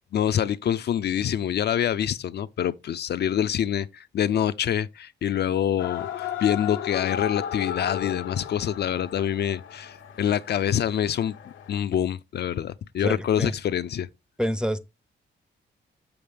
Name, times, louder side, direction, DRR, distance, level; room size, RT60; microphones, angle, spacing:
voice 1, 0.1-14.1, left 9 dB, 55° left, 0.4 m, -26 dB
sound 1, 5.8-11.8, left 10 dB, 90° left, 0.8 m, -35 dB
voice 2, 13.0-13.5 14.4-14.8, equal, 5° right, 0.5 m, -27 dB
7.0 x 5.9 x 3.3 m
cardioid pair, 100°, 20 cm